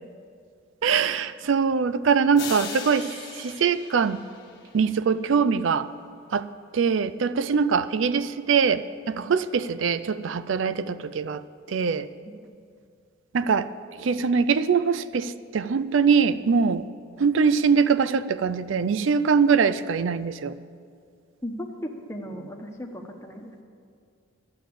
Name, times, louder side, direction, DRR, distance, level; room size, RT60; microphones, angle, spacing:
voice 1, 0.8-3.1 3.4-4.2 4.7-5.9 6.3-6.5 6.7-11.4 11.7-12.1 13.3-13.7 14.0-16.8 17.2-20.5, right 6 dB, 65° right, 14 dB, 0.4 m, -22 dB
sound 1, 2.4-5.0, left 6 dB, 60° left, 1.2 m, -38 dB
voice 2, 21.4-23.5, equal, 15° left, 1 dB, 1.0 m, -36 dB
11.5 x 7.4 x 8.5 m, 2.2 s
head